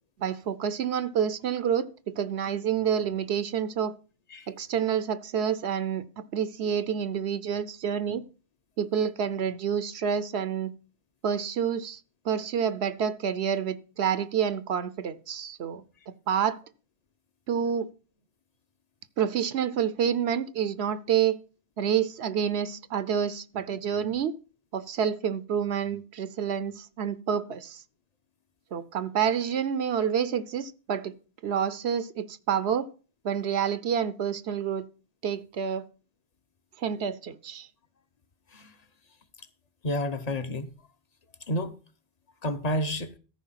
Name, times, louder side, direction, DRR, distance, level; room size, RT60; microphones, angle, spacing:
voice 1, 0.2-3.9 4.5-8.2 8.8-10.7 11.2-12.0 12.2-15.8 16.3-16.6 17.5-17.9 19.2-21.4 21.8-24.3 24.7-27.8 28.7-31.1 31.4-32.9 33.2-34.9 35.2-35.8 36.8-37.7, right 8 dB, 75° right, 0.9 m, -28 dB
voice 2, 39.8-40.7 41.5-41.7 42.4-43.1, left 1 dB, 40° left, 0.9 m, -30 dB
13.5 x 5.1 x 5.7 m
omnidirectional pair, 1.1 m